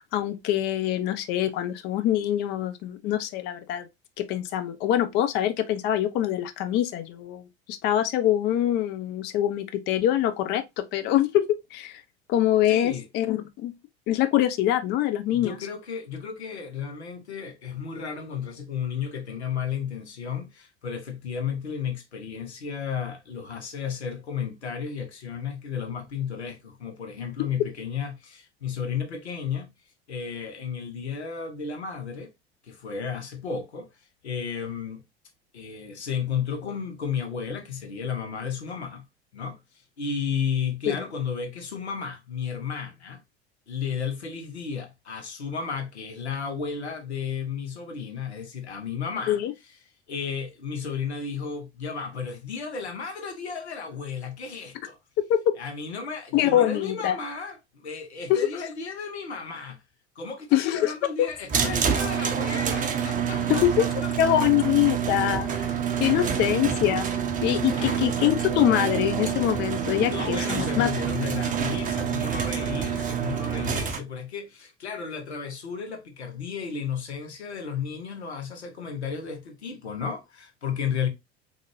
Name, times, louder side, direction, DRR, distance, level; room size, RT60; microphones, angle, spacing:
voice 1, 0.0-3.9 4.2-7.4 7.7-12.0 12.3-13.7 14.1-15.6 40.9-41.0 49.3-49.5 55.3-55.4 56.3-57.2 58.3-58.5 60.5-60.9 61.2-61.3 63.5-63.8 64.2-65.7 66.0-67.1 67.4-70.9, left 12 dB, 35° left, 0.4 m, -24 dB
voice 2, 12.7-13.1 15.3-29.7 30.1-32.3 32.6-33.9 34.2-35.0 35.5-39.0 39.3-39.6 40.0-43.2 43.7-49.4 50.1-55.0 55.6-59.8 60.2-64.1 66.0-66.2 67.7-68.2 70.1-81.1, left 6 dB, 80° left, 0.8 m, -33 dB
sound 1, 61.5-74.0, right 8 dB, 25° right, 0.6 m, -27 dB
3.7 x 2.6 x 2.9 m
figure-of-eight pair, 70°, 33 cm